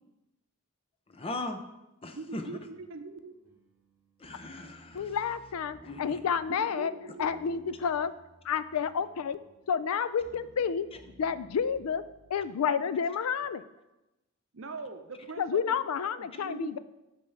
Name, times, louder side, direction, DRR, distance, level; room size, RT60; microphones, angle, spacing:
voice 1, 1.1-1.6 2.0-2.6 4.2-5.2 5.8-6.2, left 2 dB, 25° left, 7 dB, 0.6 m, -39 dB
voice 2, 2.1-3.4 6.5-7.8 12.4-13.0 13.3-13.5 14.5-16.8, right 3 dB, 60° right, 8 dB, 0.7 m, -43 dB
sound 1, 2.6-12.4, right 1 dB, 10° right, 2.1 m, -57 dB
voice 3, 4.9-6.9 7.2-8.1 8.4-9.4 9.7-10.9 11.2-12.0 12.3-13.6 15.4-16.8, left 7 dB, 85° left, 15 dB, 0.4 m, -30 dB
8.8 x 3.5 x 6.5 m, 0.97 s
head